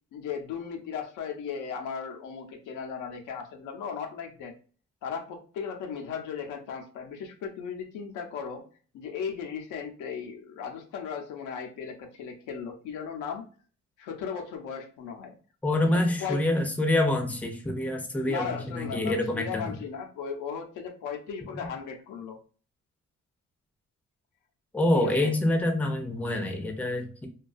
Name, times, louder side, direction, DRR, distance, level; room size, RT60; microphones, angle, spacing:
voice 1, 0.1-4.5 5.0-8.6 8.9-13.5 14.0-15.4 15.7-16.4 18.2-22.4 24.9-25.4, left 6 dB, 85° left, 4 dB, 0.6 m, -36 dB
voice 2, 15.6-19.8 24.7-27.3, left 1 dB, 5° left, 4 dB, 0.5 m, -26 dB
2.3 x 2.3 x 2.4 m, 0.40 s
cardioid pair, 90°, 30 cm